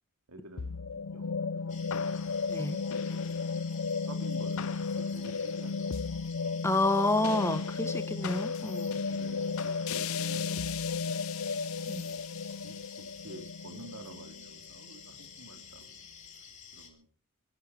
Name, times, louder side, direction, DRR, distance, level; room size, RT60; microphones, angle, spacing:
voice 1, 0.3-0.8 1.0-2.4 3.0-3.4 4.1-6.0 9.0-11.1 11.9-12.2 12.6-16.1 16.7-17.1, right 2 dB, 85° right, 5 dB, 3.3 m, -50 dB
sound 1, 0.6-15.0, left 5 dB, 70° left, 0.6 m, -34 dB
sound 2, 1.7-16.9, left 6 dB, 35° left, 3.1 m, -50 dB
voice 2, 6.6-9.0 11.9-12.0, left 2 dB, 10° left, 10 dB, 1.2 m, -29 dB
25.0 x 11.5 x 4.5 m, 0.42 s
head